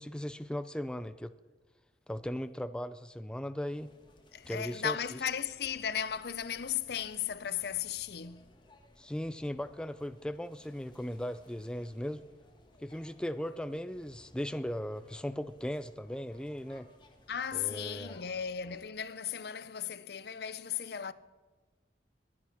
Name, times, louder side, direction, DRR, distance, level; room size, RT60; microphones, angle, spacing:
voice 1, 0.0-1.3 2.1-3.9 4.5-5.2 9.0-12.2 12.8-16.9 17.5-18.2, equal, 5° left, 0.4 m, -38 dB
sound 1, 3.6-18.9, left 1 dB, 25° left, 1.6 m, -61 dB
voice 2, 4.3-8.5 17.3-21.1, left 8 dB, 60° left, 0.6 m, -36 dB
21.5 x 8.6 x 5.8 m
head